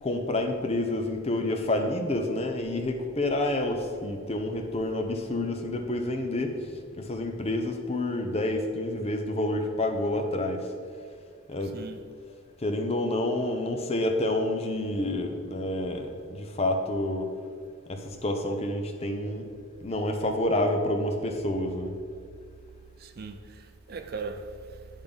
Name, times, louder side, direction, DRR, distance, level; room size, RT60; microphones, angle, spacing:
voice 1, 0.0-6.5 7.0-10.6 11.5-11.7 12.6-17.3 17.9-19.4 19.8-21.9, left 1 dB, 30° left, 0.6 m, -28 dB
voice 2, 23.0-25.0, right 4 dB, 45° right, 0.4 m, -39 dB
9.9 x 3.6 x 5.2 m
head